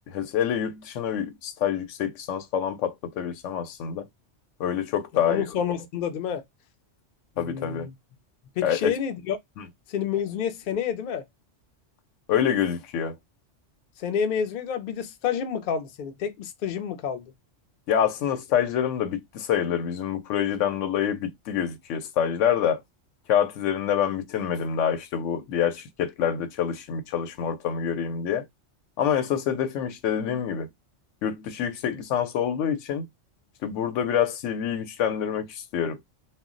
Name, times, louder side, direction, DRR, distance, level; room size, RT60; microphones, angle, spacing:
voice 1, 0.0-4.0 4.6-5.5 7.4-7.9 8.6-8.9 9.6-9.7 12.3-13.2 17.9-22.8 23.3-28.5 29.0-30.7 31.2-33.1 33.6-36.0, left 9 dB, 80° left, 0.9 m, -26 dB
voice 2, 5.2-6.4 7.4-7.9 8.6-9.4 9.9-11.2 14.0-17.3, left 7 dB, 60° left, 0.5 m, -29 dB
2.2 x 2.1 x 3.7 m
omnidirectional pair, 1.3 m